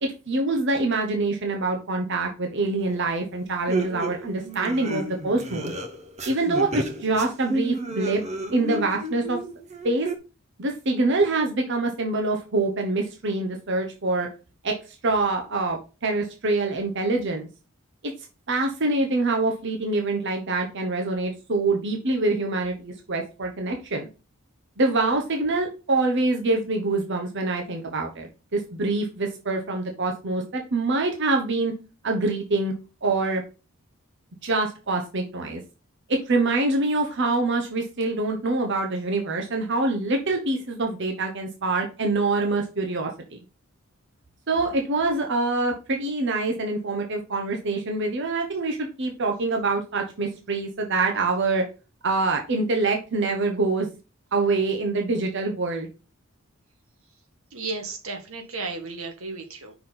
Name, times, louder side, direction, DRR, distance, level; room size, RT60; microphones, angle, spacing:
voice 1, 0.0-5.7 6.2-8.2 8.5-9.4 9.8-10.1 10.6-14.3 14.6-14.7 15.0-17.5 18.5-24.1 24.8-31.7 32.0-32.7 33.0-33.4 34.4-35.6 36.1-43.4 44.5-51.6 52.0-53.9 54.3-55.9, right 3 dB, 60° right, 3 dB, 1.0 m, -25 dB
sound 1, 2.9-3.0 3.7-10.2, right 1 dB, 35° right, 0.8 m, -31 dB
voice 2, 57.5-59.7, right 3 dB, 90° right, 4 dB, 1.5 m, -34 dB
5.8 x 4.2 x 3.8 m, 0.31 s
head